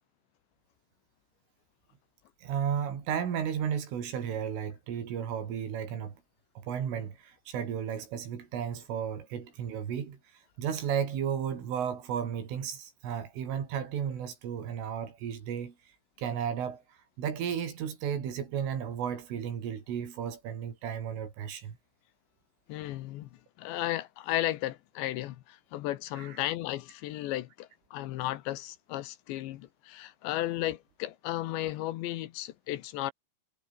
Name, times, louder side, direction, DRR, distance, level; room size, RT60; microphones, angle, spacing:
voice 1, 2.4-6.2 6.6-10.2 10.6-15.8 16.2-21.8 26.2-26.4, right 8 dB, 90° right, 6.5 m, -34 dB
voice 2, 22.7-23.3 23.6-33.1, left 15 dB, 75° left, 3.1 m, -34 dB
omnidirectional pair, 5.5 m